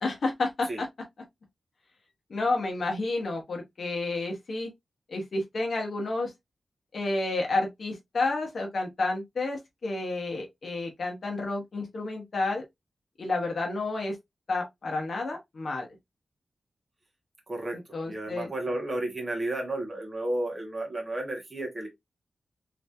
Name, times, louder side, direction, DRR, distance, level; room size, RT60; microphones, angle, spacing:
voice 1, 0.0-0.9 2.3-4.7 5.1-6.3 6.9-12.6 13.2-14.2 14.5-15.9 17.7-18.5, left 2 dB, 55° left, 0.9 m, -30 dB
voice 2, 17.5-17.8 18.0-21.9, right 1 dB, 25° right, 1.3 m, -32 dB
3.3 x 3.0 x 2.5 m
wide cardioid pair, 155°, 0 cm